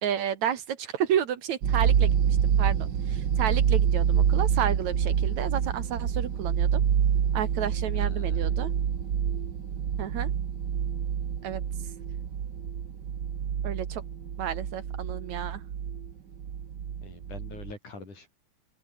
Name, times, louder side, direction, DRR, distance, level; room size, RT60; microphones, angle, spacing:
voice 1, 0.0-6.8 7.3-8.7 10.0-10.3 11.4-11.6 13.6-14.0 14.4-15.6, right 9 dB, 65° right, 2.8 m, -31 dB
sound 1, 1.6-17.7, right 8 dB, 50° right, 1.5 m, -27 dB
voice 2, 8.0-8.5 17.0-18.3, left 3 dB, 70° left, 9.2 m, -44 dB
open air
omnidirectional pair, 3.6 m